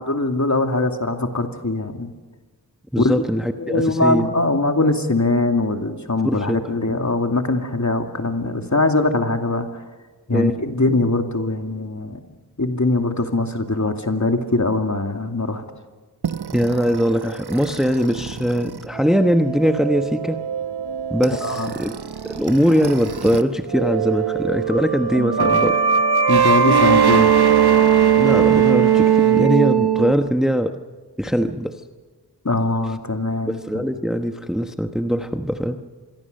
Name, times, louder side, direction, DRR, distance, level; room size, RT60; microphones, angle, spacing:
voice 1, 0.0-2.1 3.0-3.1 3.6-9.7 10.3-12.2 12.6-15.6 21.4-21.7 26.3-27.3 32.4-33.8, left 2 dB, 45° left, 5 dB, 2.4 m, -21 dB
voice 2, 2.9-4.3 6.2-6.6 6.9-7.0 10.3-10.6 16.5-20.4 21.1-22.0 22.2-25.8 28.2-30.8 31.2-31.8 33.5-35.8, equal, ahead, 7 dB, 1.1 m, -21 dB
sound 1, 16.2-23.4 23.7-30.1, right 8 dB, 65° right, 1.1 m, -20 dB
26.0 x 22.0 x 6.7 m, 1.3 s
wide cardioid pair, 60°, 41 cm